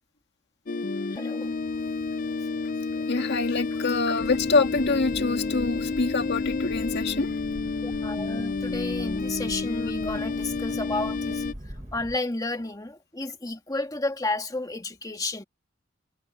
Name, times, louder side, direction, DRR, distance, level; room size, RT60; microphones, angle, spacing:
sound 1, 0.7-11.5, left 4 dB, 45° left, 0.5 m, -30 dB
voice 1, 1.1-1.5 7.8-11.4 11.9-15.4, left 2 dB, 20° left, 1.8 m, -32 dB
sound 2, 1.4-12.1, equal, 45° right, 3.8 m, -53 dB
voice 2, 2.9-7.3, left 4 dB, 60° left, 1.9 m, -26 dB
Boat Water vehicle, 4.2-12.2, equal, 20° right, 1.5 m, -43 dB
head